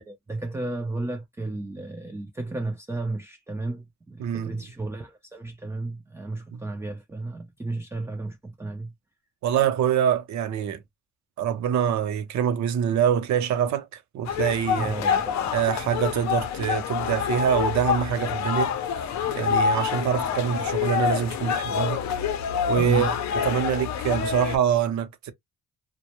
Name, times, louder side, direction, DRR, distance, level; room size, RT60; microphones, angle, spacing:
voice 1, 0.0-8.9 14.8-15.5 22.8-23.2, right 2 dB, 10° right, 0.3 m, -33 dB
voice 2, 4.2-4.7 6.5-6.6 9.4-10.8 11.4-13.9 14.1-15.0 15.5-18.7 19.3-22.0 22.7-25.3, right 8 dB, 65° right, 0.6 m, -25 dB
sound 1, 14.3-24.6, left 7 dB, 65° left, 0.6 m, -27 dB
2.1 x 2.1 x 2.9 m
cardioid pair, 90°, 30 cm